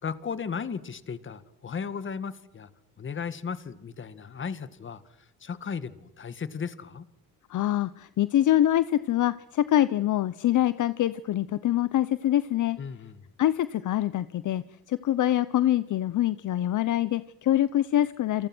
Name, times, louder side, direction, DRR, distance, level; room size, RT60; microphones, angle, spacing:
voice 1, 0.0-2.7 3.0-7.1 12.8-13.2, left 6 dB, 35° left, 13 dB, 1.9 m, -35 dB
voice 2, 7.5-12.8 13.4-18.5, left 12 dB, 55° left, 15 dB, 0.9 m, -25 dB
28.0 x 27.5 x 6.3 m, 0.82 s
cardioid pair, 135°, 36 cm